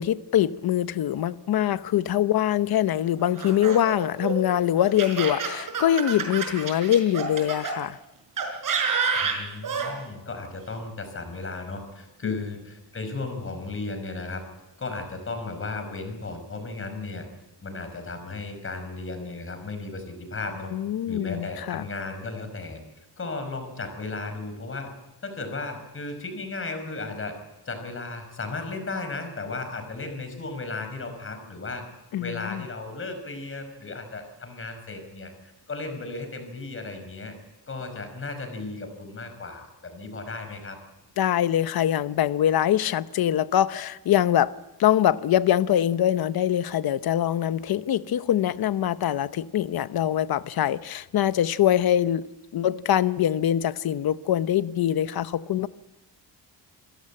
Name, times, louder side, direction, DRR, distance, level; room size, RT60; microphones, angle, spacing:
voice 1, 0.0-8.0 12.2-12.4 20.7-21.8 32.1-32.6 41.2-44.5 44.8-52.3 52.5-55.7, left 11 dB, 60° left, 0.9 m, -23 dB
Laughter, 3.4-7.7 8.4-9.9, right 5 dB, 50° right, 5.5 m, -28 dB
voice 2, 9.2-14.4 14.8-17.3 17.6-20.7 21.1-22.8 23.2-24.9 25.2-27.4 27.7-31.8 32.2-35.3 35.7-37.3 37.7-40.8, left 3 dB, 30° left, 5.4 m, -35 dB
27.0 x 16.5 x 8.8 m
cardioid pair, 150°, 41 cm